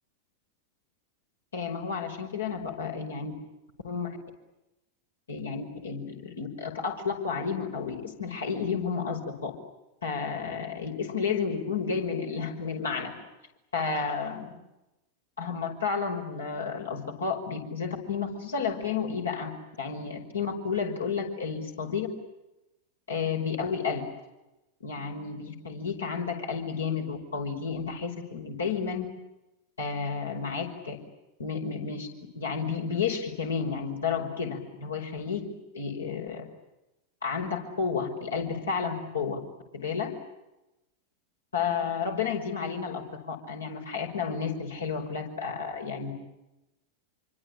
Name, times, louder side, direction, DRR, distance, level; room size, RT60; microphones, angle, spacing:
voice 1, 1.5-3.3 3.8-4.2 5.3-9.5 10.0-13.1 13.7-14.5 15.4-19.5 19.8-22.1 23.1-24.0 24.8-29.1 29.8-31.0 31.4-32.1 32.3-35.5 35.7-36.5 37.2-39.4 39.7-40.1 41.5-43.0 43.3-46.1, left 5 dB, 70° left, 2 dB, 5.3 m, -31 dB
27.0 x 25.0 x 8.8 m, 0.96 s
figure-of-eight pair, 90°, 0 cm